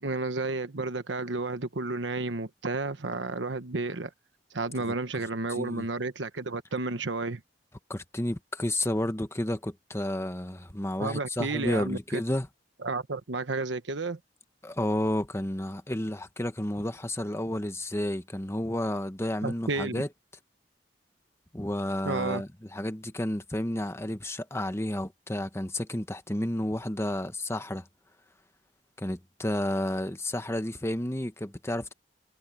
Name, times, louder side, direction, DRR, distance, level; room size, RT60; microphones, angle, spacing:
voice 1, 0.0-4.1 4.5-7.4 11.0-12.0 12.8-14.2 19.4-20.0 22.0-22.4, right 3 dB, 85° right, 1.2 m, -31 dB
voice 2, 5.5-5.9 7.9-12.5 14.6-20.1 21.5-27.8 29.0-31.9, left 1 dB, 15° left, 1.3 m, -31 dB
head